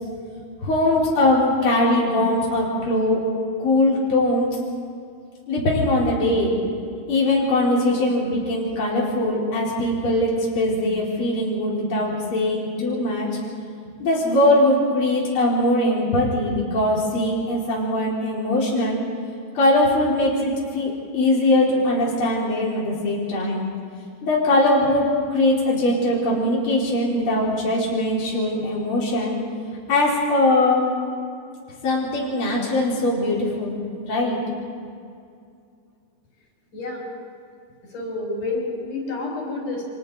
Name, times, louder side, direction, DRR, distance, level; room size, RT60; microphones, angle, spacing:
voice 1, 0.6-3.2 3.6-4.5 5.5-6.5 7.1-13.3 14.0-19.0 19.5-23.6 24.2-29.3 29.9-30.9 31.8-34.4, left 1 dB, 40° left, -5 dB, 4.4 m, -21 dB
voice 2, 36.7-37.0 37.9-39.8, left 2 dB, 80° left, -2 dB, 6.5 m, -29 dB
30.0 x 25.5 x 4.0 m, 2.3 s
omnidirectional pair, 3.6 m